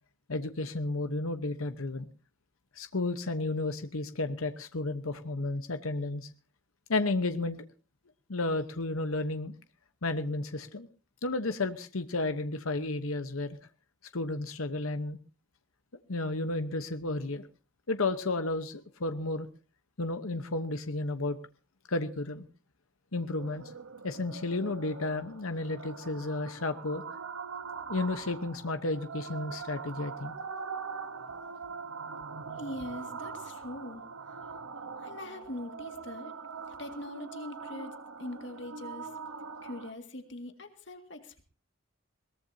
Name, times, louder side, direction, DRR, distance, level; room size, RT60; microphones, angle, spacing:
voice 1, 0.3-2.1 2.7-6.3 6.9-7.6 8.3-9.5 10.0-10.9 11.2-13.6 14.1-15.2 16.1-17.5 17.9-19.5 20.0-21.4 21.9-22.4 23.1-23.7 24.0-27.0 27.9-30.3, left 2 dB, 85° left, 9 dB, 1.1 m, -32 dB
sound 1, 23.4-39.9, right 5 dB, 80° right, 1.1 m, -42 dB
voice 2, 32.6-34.6 35.0-36.4 36.7-39.2 39.6-41.4, left 1 dB, 60° left, 6 dB, 2.0 m, -42 dB
22.0 x 18.5 x 2.8 m, 0.35 s
head